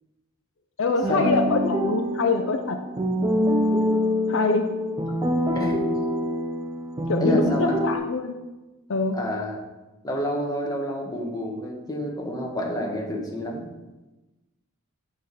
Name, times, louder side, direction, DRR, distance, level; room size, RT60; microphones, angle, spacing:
voice 1, 0.8-2.8 4.3-4.7 7.1-8.4 8.9-9.2, left 3 dB, 65° left, 5 dB, 0.6 m, -24 dB
sound 1, 1.0-8.0, equal, 20° right, 0.7 m, -25 dB
voice 2, 7.2-7.8 9.1-9.6 10.0-13.7, left 1 dB, 20° left, -1 dB, 1.4 m, -28 dB
8.1 x 5.9 x 4.8 m, 1.1 s
head